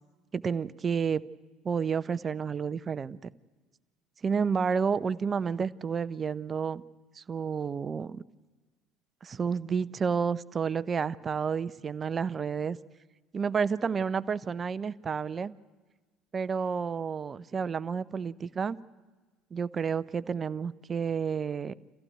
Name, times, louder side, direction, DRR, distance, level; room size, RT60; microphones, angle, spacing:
voice 1, 0.3-1.2 1.6-3.3 4.2-6.8 7.2-8.2 9.2-12.8 13.3-15.5 16.3-18.8 19.5-21.7, right 6 dB, 35° right, 17 dB, 0.7 m, -30 dB
28.0 x 15.0 x 9.3 m, 1.3 s
hypercardioid pair, 60°, 0 cm